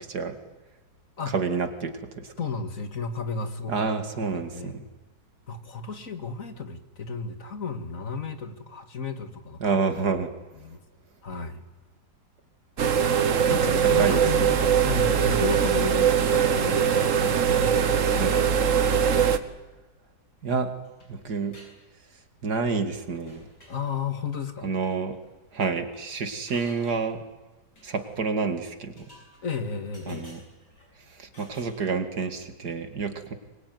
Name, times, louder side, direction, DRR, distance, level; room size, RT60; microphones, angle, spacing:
voice 1, 1.3-2.3 3.7-4.8 9.6-10.3 14.0-14.3 18.2-18.3 20.4-20.7 21.1-21.5 22.4-23.5 24.6-25.2 25.5-27.2 27.8-28.9 30.1-30.4 31.2-33.3, right 4 dB, 70° right, 9 dB, 2.6 m, -28 dB
voice 2, 2.4-3.8 4.5-4.8 5.5-9.8 10.5-10.8 11.2-11.6 13.5-18.7 23.7-24.7 29.4-30.3, left 5 dB, 55° left, 9 dB, 2.3 m, -33 dB
sound 1, 12.8-19.4, right 8 dB, 50° right, 1.5 m, -22 dB
sound 2, 20.8-21.8 22.0-22.6 22.9-23.0 23.3-23.8 24.8-24.9 25.2-25.3 25.5-26.0 26.5-27.2 27.8-28.3 29.0-29.6 29.9-30.9 31.3-32.3, equal, 85° left, 7.7 m, -53 dB
24.0 x 22.5 x 9.5 m, 1.2 s
omnidirectional pair, 1.8 m